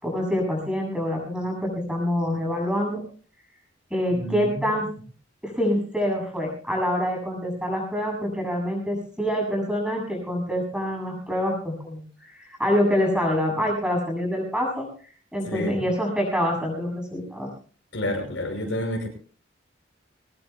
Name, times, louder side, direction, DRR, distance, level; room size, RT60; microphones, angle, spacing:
voice 1, 0.0-3.0 3.9-4.9 5.4-12.0 12.3-14.9 15.3-17.5, equal, 5° right, 0 dB, 7.6 m, -26 dB
voice 2, 4.1-4.8 15.5-15.8 17.9-19.1, left 1 dB, 80° left, 3 dB, 5.8 m, -29 dB
23.5 x 20.0 x 2.3 m, 0.40 s
head